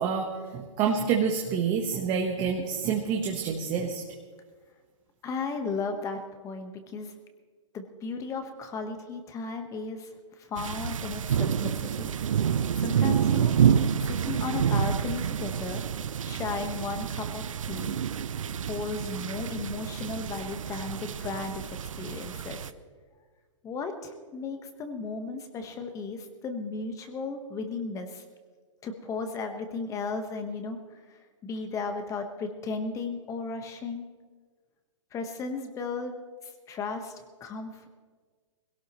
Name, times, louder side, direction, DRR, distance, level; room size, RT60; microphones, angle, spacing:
voice 1, 0.0-4.0, right 6 dB, 30° right, 1 dB, 1.3 m, -28 dB
voice 2, 5.2-7.1 7.7-10.1 10.4-12.1 12.7-13.6 14.0-15.8 16.2-18.0 18.6-22.7 23.6-28.2 28.8-34.1 35.1-36.1 36.4-37.9, left 4 dB, 20° left, 6 dB, 1.4 m, -35 dB
sound 1, 10.6-22.7, right 8 dB, 85° right, 0.6 m, -28 dB
21.0 x 17.5 x 3.2 m, 1.5 s
hypercardioid pair, 140°, 16 cm